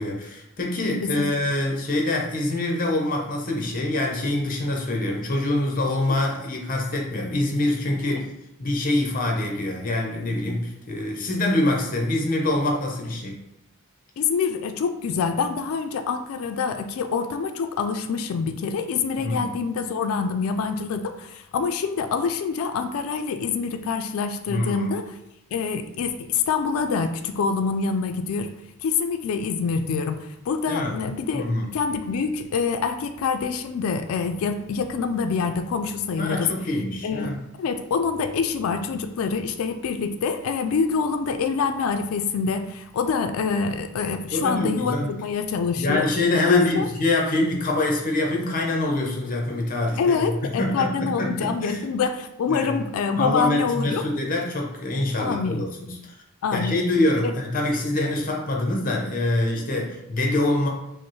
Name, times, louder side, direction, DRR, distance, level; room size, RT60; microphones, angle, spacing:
voice 1, 0.0-8.2 8.6-13.3 19.2-19.5 24.5-24.9 30.7-30.9 31.3-31.6 36.2-37.3 44.3-45.1 45.8-51.8 52.5-52.7 53.2-56.1 56.5-60.7, left 2 dB, 40° left, 0 dB, 0.7 m, -25 dB
voice 2, 14.2-25.2 25.5-28.5 28.8-31.5 31.7-36.5 37.0-46.1 46.4-46.9 50.0-54.1 55.2-55.6 56.4-56.8 57.2-57.3, left 5 dB, 75° left, 7 dB, 0.3 m, -26 dB
5.1 x 2.0 x 3.1 m, 0.85 s
head